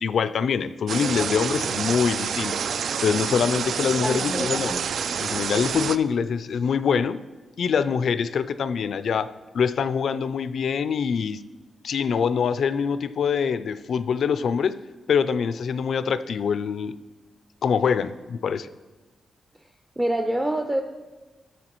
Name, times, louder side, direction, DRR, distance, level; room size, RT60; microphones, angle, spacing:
voice 1, 0.0-2.5 3.0-4.7 5.2-7.2 7.6-11.4 11.8-14.8 15.1-17.0 17.6-18.7, left 6 dB, 70° left, 14 dB, 0.3 m, -24 dB
sound 1, 0.9-6.0, right 7 dB, 70° right, 0.3 m, -28 dB
voice 2, 4.0-4.8 20.0-20.8, right 1 dB, 10° right, 5 dB, 0.5 m, -26 dB
13.5 x 6.9 x 3.1 m, 1.2 s
wide cardioid pair, 140°, 0 cm